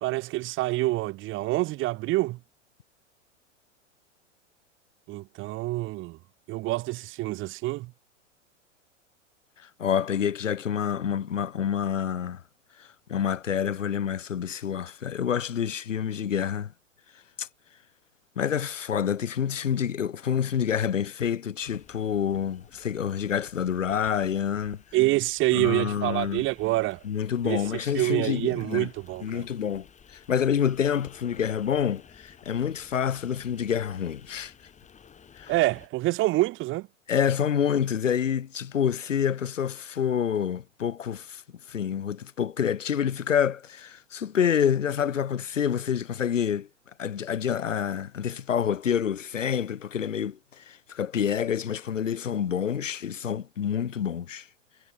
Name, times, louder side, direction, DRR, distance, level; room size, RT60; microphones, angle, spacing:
voice 1, 0.0-2.4 5.1-6.2 6.5-7.9 24.9-27.0 27.4-27.6 27.9-29.4 35.5-36.9, right 18 dB, 30° right, 1.2 m, -26 dB
voice 2, 9.8-12.4 12.8-16.7 17.4-17.5 18.4-24.8 25.5-26.4 27.0-28.9 29.2-34.5 35.4-35.5 37.1-41.4 41.7-46.7 47.0-54.5, left 8 dB, 75° left, 2.4 m, -27 dB
sound 1, 21.6-35.9, left 7 dB, 20° left, 3.4 m, -54 dB
figure-of-eight pair, 100°, 38 cm